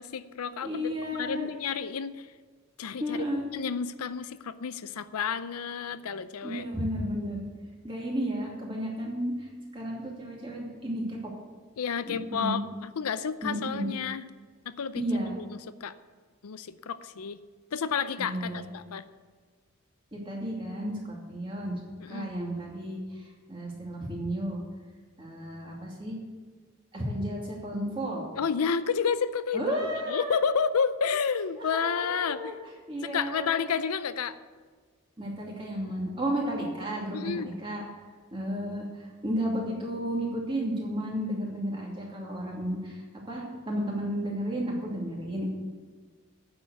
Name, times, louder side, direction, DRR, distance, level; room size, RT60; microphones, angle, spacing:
voice 1, 0.0-2.3 2.8-3.2 3.5-6.6 11.8-14.2 14.7-15.0 15.4-15.9 16.4-17.4 17.7-19.0 22.0-22.3 28.4-29.8 30.1-32.6 33.0-34.4 37.1-37.5, left 6 dB, 85° left, 13 dB, 0.5 m, -30 dB
voice 2, 0.6-1.5 3.0-3.4 6.4-7.4 7.8-9.5 9.7-11.2 12.1-12.6 13.4-13.9 15.0-15.3 18.2-18.7 20.1-21.8 22.1-23.0 23.5-24.6 25.2-26.1 26.9-28.2 29.5-30.3 31.6-32.6 32.9-33.5 35.2-37.8 38.3-38.8 39.2-45.5, equal, 25° right, -3 dB, 2.6 m, -32 dB
9.5 x 7.0 x 8.2 m, 1.5 s
head